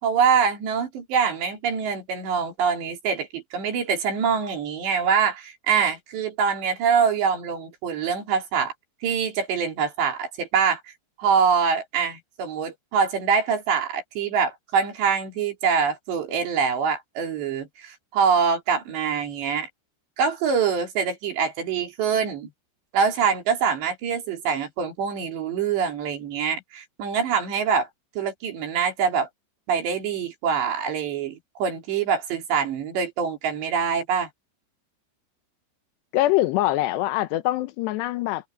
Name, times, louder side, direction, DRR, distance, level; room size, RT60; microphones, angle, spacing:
voice 1, 0.0-8.7 9.0-10.8 11.2-19.7 20.2-22.5 22.9-27.9 28.2-29.3 29.7-34.3, right 6 dB, 85° right, 5.9 m, -24 dB
voice 2, 36.1-38.5, left 15 dB, 90° left, 3.1 m, -23 dB
omnidirectional pair, 4.8 m